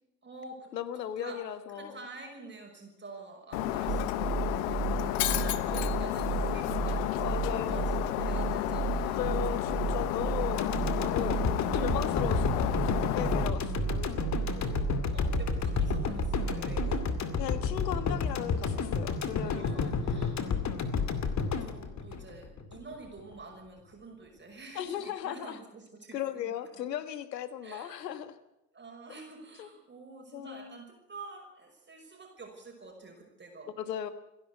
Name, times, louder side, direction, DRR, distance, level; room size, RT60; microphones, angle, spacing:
voice 1, 0.2-1.4 1.7-9.4 9.7-10.2 14.1-17.1 19.4-21.0 21.4-26.5 27.6-28.1 28.7-33.7, right 3 dB, 20° right, 1 dB, 5.8 m, -48 dB
voice 2, 0.7-2.0 7.2-8.0 9.1-10.7 11.0-14.5 17.4-19.9 24.7-25.6 26.1-28.4 29.6-29.7 30.3-30.8 33.8-34.1, left 10 dB, 80° left, 13 dB, 1.6 m, -37 dB
Shatter, 3.5-13.5, left 14 dB, 60° left, 1.3 m, -32 dB
sound 1, 3.9-17.2, right 7 dB, 40° right, 3.0 m, -34 dB
sound 2, 10.6-22.8 23.2-23.3, left 5 dB, 35° left, 2.4 m, -31 dB
28.5 x 11.0 x 8.3 m, 0.90 s
hypercardioid pair, 75°, 49 cm